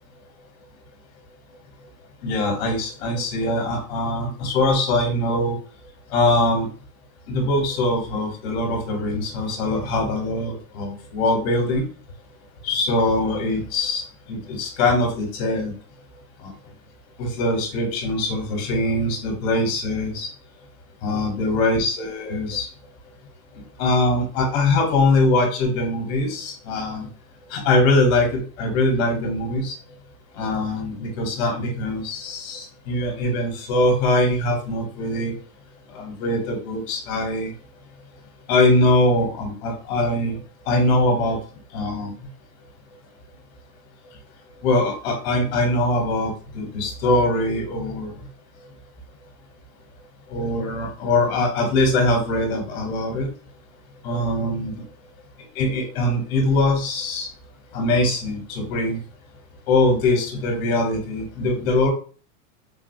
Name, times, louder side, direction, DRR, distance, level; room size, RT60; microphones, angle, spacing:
voice 1, 2.2-5.5 6.1-6.7 7.3-11.8 12.6-14.0 14.3-15.7 17.2-20.3 21.0-22.7 23.8-27.1 27.5-29.7 30.4-35.3 35.9-37.5 38.5-40.4 40.7-41.4 41.7-42.1 44.6-48.1 50.3-53.3 54.0-54.7 55.6-57.3 57.7-59.0 59.7-61.9, left 2 dB, 45° left, 1 dB, 1.2 m, -22 dB
3.9 x 2.1 x 2.6 m, 0.39 s
supercardioid pair, 160°, 46 cm